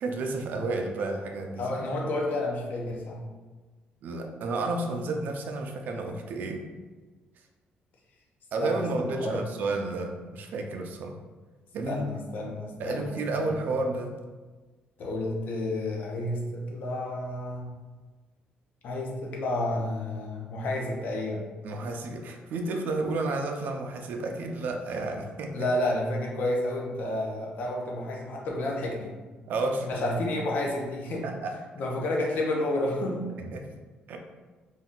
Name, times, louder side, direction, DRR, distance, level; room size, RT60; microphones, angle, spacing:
voice 1, 0.0-1.8 4.0-6.7 8.5-11.2 11.7-12.1 12.8-14.2 21.6-25.5 29.4-29.9 31.2-31.5 33.4-33.7 34.1-34.2, right 2 dB, 60° right, 3 dB, 0.4 m, -31 dB
voice 2, 1.6-3.2 8.6-9.4 11.9-13.5 15.0-17.7 18.8-21.5 25.5-29.2 29.8-31.3 31.8-33.3, left 1 dB, 55° left, -1 dB, 0.6 m, -30 dB
2.7 x 2.3 x 3.5 m, 1.3 s
cardioid pair, 165°, 3 cm